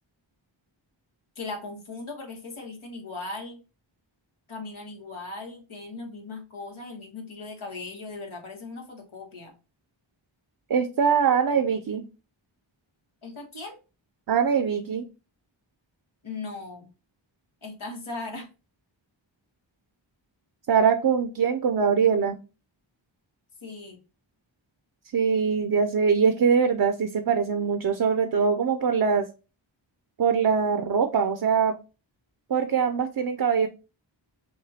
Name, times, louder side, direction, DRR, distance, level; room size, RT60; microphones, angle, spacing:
voice 1, 1.3-3.6 4.5-9.5 13.2-13.8 16.2-16.9 17.6-18.5 23.6-24.0, left 3 dB, 85° left, 2 dB, 1.2 m, -38 dB
voice 2, 10.7-12.0 14.3-15.0 20.7-22.4 25.1-29.3 30.2-31.8 32.5-33.7, right 6 dB, 50° right, 8 dB, 0.5 m, -22 dB
6.2 x 2.2 x 2.7 m, 0.32 s
wide cardioid pair, 50°, 48 cm